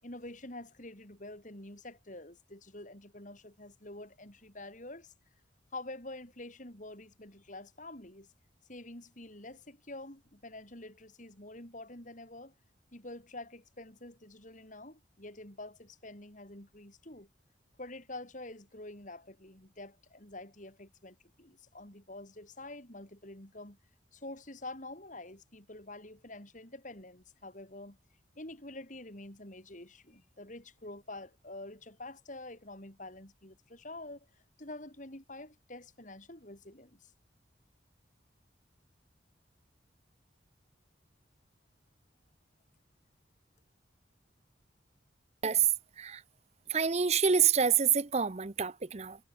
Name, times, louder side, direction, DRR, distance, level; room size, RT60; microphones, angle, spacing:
voice 1, 0.0-5.1 5.7-8.3 8.7-12.5 12.9-17.3 17.8-23.8 24.1-28.0 28.4-34.3 34.6-37.1, left 2 dB, 45° left, 5.8 m, -47 dB
voice 2, 46.7-49.2, right 7 dB, 35° right, 0.8 m, -27 dB
head